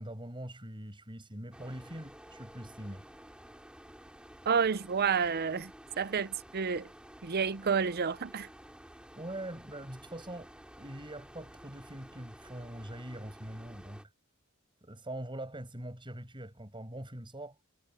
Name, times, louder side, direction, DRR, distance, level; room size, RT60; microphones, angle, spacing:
voice 1, 0.0-3.0 9.2-10.5 10.8-14.0 14.8-17.6, right 1 dB, 25° right, 7.3 m, -43 dB
sound 1, 1.5-14.1, equal, 5° right, 3.3 m, -53 dB
voice 2, 4.5-5.7 6.0-6.9 7.2-8.5, right 6 dB, 50° right, 0.6 m, -29 dB
head